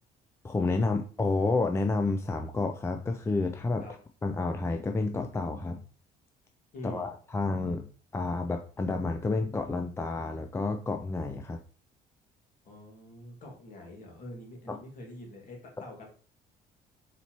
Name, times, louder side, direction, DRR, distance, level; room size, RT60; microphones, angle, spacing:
voice 1, 0.4-3.8 4.2-5.8 6.8-11.6 14.7-14.8, left 3 dB, 15° left, 5 dB, 0.4 m, -30 dB
voice 2, 6.7-7.1 12.6-16.1, left 1 dB, 50° left, 0 dB, 1.9 m, -45 dB
4.4 x 4.2 x 2.9 m, 0.41 s
cardioid pair, 110°, 17 cm